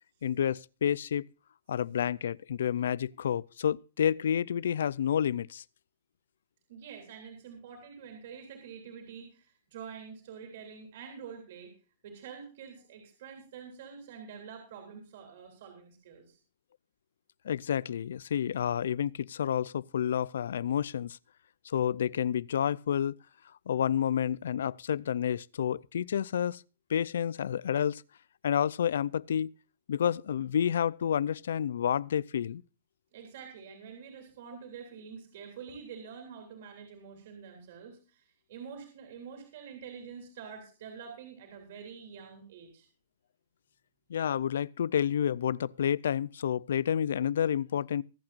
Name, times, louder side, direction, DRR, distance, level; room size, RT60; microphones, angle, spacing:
voice 1, 0.2-1.2 1.7-5.6 17.4-21.2 21.7-23.2 23.7-26.6 26.9-28.0 28.4-29.5 29.9-32.6 44.1-48.0, left 9 dB, 75° left, 0.5 m, -29 dB
voice 2, 6.7-11.7 12.0-16.4 33.1-42.9, right 6 dB, 45° right, 3.4 m, -47 dB
23.5 x 8.9 x 2.5 m
hypercardioid pair, 180°, 0 cm